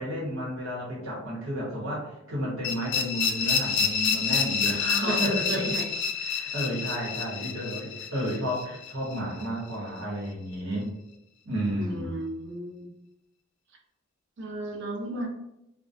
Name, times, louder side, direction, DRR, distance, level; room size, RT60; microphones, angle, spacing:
voice 1, 0.0-5.6 6.1-10.9 11.4-12.2, equal, 80° right, -5 dB, 1.0 m, -32 dB
sound 1, 2.6-9.5, left 6 dB, 55° left, 0.3 m, -28 dB
voice 2, 4.6-5.9 11.7-12.9 14.4-15.3, right 1 dB, 60° right, 2 dB, 0.5 m, -34 dB
2.2 x 2.1 x 2.5 m, 0.86 s
head